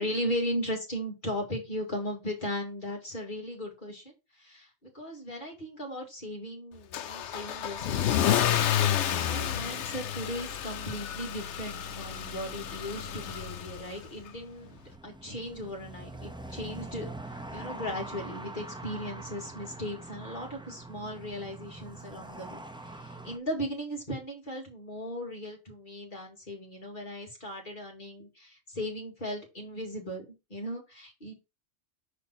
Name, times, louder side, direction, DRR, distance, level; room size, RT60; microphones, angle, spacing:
voice 1, 0.0-4.1 4.4-14.8 15.0-30.2 30.5-31.3, equal, 45° left, 0 dB, 2.5 m, -37 dB
Car / Engine starting / Accelerating revving vroom, 6.9-14.0, left 10 dB, 80° left, 1.0 m, -30 dB
sound 1, 10.5-23.4, right 2 dB, 5° right, 0.5 m, -45 dB
5.8 x 5.1 x 4.1 m, 0.26 s
omnidirectional pair, 1.2 m